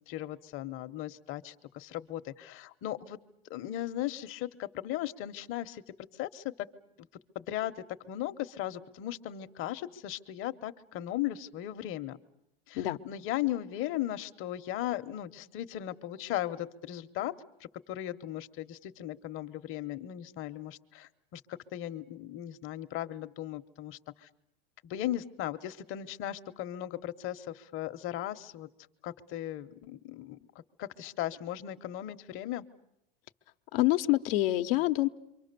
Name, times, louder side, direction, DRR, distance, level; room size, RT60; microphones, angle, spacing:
voice 1, 0.0-3.2 3.4-5.8 6.2-6.7 7.3-12.2 12.7-17.3 17.6-24.3 24.8-28.7 29.0-32.6, left 13 dB, 45° left, 10 dB, 0.9 m, -37 dB
voice 2, 33.7-35.1, left 17 dB, 75° left, 9 dB, 0.9 m, -26 dB
27.0 x 24.5 x 6.8 m, 0.85 s
supercardioid pair, 125°, 29 cm